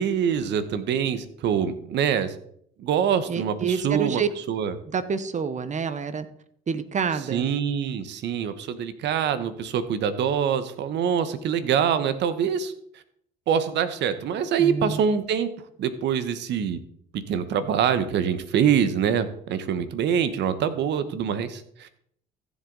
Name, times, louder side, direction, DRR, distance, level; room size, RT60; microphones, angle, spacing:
voice 1, 0.0-2.3 2.8-4.2 4.5-4.7 7.3-12.7 13.5-15.5 15.8-16.8 17.1-21.9, right 8 dB, 65° right, 12 dB, 1.2 m, -25 dB
voice 2, 3.3-4.6 4.9-6.3 6.7-7.4 14.6-15.0, right 6 dB, 40° right, 13 dB, 1.1 m, -28 dB
14.5 x 7.3 x 4.0 m, 0.66 s
supercardioid pair, 75°, 19 cm